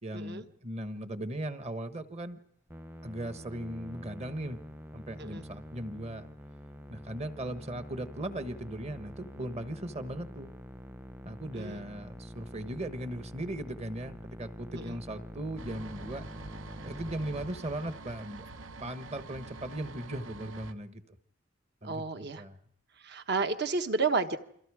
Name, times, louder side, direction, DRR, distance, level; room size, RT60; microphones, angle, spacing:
voice 1, 0.0-2.4 3.0-4.6 4.9-6.3 6.9-10.5 11.2-16.2 16.8-18.5 18.8-21.2 21.8-22.6, right 1 dB, 30° right, 9 dB, 1.2 m, -38 dB
Musical instrument, 2.7-17.5, equal, 10° right, 0.9 m, -46 dB
sound 1, 15.6-20.7, right 3 dB, 75° right, 1.1 m, -46 dB
voice 2, 21.8-22.4 23.0-24.4, right 4 dB, 55° right, 8 dB, 1.3 m, -31 dB
29.0 x 23.5 x 4.9 m, 0.68 s
head